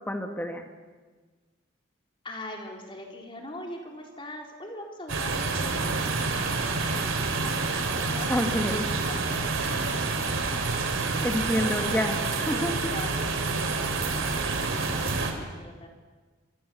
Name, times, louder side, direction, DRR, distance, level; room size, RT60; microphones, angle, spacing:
voice 1, 0.1-0.7 8.3-8.9 11.2-12.9, equal, 10° left, 4 dB, 2.0 m, -28 dB
voice 2, 2.2-6.2 6.5-9.6 11.4-11.8 12.3-15.9, left 1 dB, 25° left, 1 dB, 3.8 m, -42 dB
sound 1, 5.1-15.3, right 3 dB, 90° right, 3.4 m, -28 dB
26.0 x 24.5 x 7.0 m, 1.4 s
head